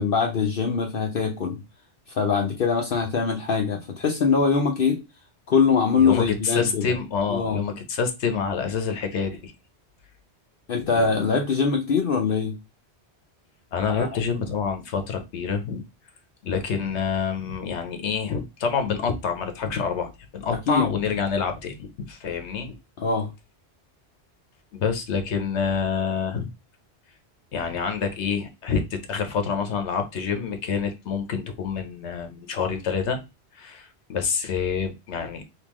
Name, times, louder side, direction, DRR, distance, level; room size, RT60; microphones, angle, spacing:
voice 1, 0.0-1.6 2.1-5.0 5.5-6.9 7.3-7.6 10.7-12.6 13.9-14.1 20.5-20.9 23.0-23.3, left 5 dB, 60° left, 0.8 m, -23 dB
voice 2, 6.0-9.5 10.9-11.2 13.7-15.8 16.4-22.7 24.7-26.5 27.5-33.2 33.5-35.4, left 6 dB, 85° left, 1.1 m, -27 dB
3.5 x 2.9 x 3.0 m
omnidirectional pair, 1.1 m